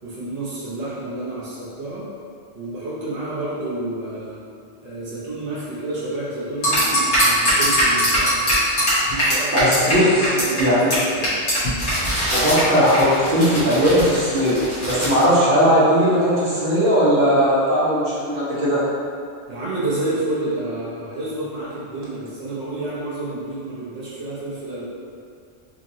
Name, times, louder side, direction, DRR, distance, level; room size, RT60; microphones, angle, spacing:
voice 1, 0.0-2.0 2.5-4.4 4.8-8.5 9.1-10.8 11.1-11.4 19.5-24.9, right 2 dB, 40° right, -9 dB, 0.8 m, -29 dB
sound 1, 6.6-9.9 10.2-10.6 10.9-11.0 11.2-15.2, equal, 80° left, 1.5 m, -21 dB
voice 2, 9.5-10.9 12.3-18.8, equal, 55° right, -9 dB, 1.1 m, -18 dB
3.9 x 2.8 x 2.7 m, 2.4 s
omnidirectional pair, 1.1 m